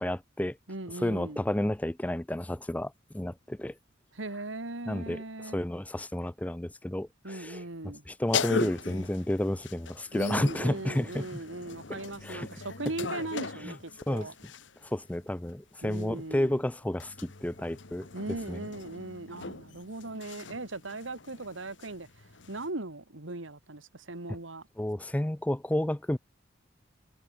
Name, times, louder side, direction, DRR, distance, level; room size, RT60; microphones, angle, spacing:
voice 1, 0.0-0.6 1.0-3.7 4.9-5.2 5.5-7.6 8.1-11.4 11.9-12.5 13.6-13.7 14.1-14.3 14.8-18.1 18.5-18.7 24.8-26.2, left 1 dB, 10° left, 0.5 m, -31 dB
voice 2, 0.7-1.4 4.1-5.6 7.2-8.0 10.1-14.3 15.8-16.6 18.1-24.7, right 2 dB, 90° right, 2.1 m, -39 dB
sound 1, 8.3-14.9 15.8-22.7, left 4 dB, 75° left, 1.5 m, -39 dB
head